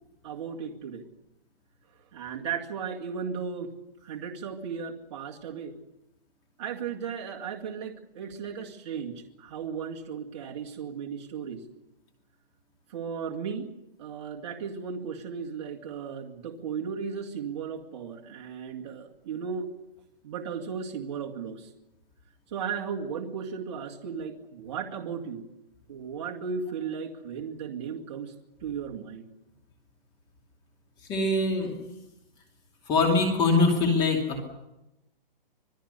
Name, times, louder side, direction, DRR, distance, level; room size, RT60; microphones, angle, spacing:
voice 1, 0.2-1.1 2.1-3.7 4.0-5.8 6.6-11.6 12.9-13.7 14.0-19.7 20.2-21.7 22.5-25.5 25.9-28.3 28.6-29.3, right 6 dB, 30° right, -1 dB, 2.2 m, -35 dB
voice 2, 31.1-31.7 32.9-34.5, left 3 dB, 15° left, 2 dB, 2.6 m, -23 dB
26.5 x 20.0 x 6.8 m, 0.94 s
hypercardioid pair, 165°, 29 cm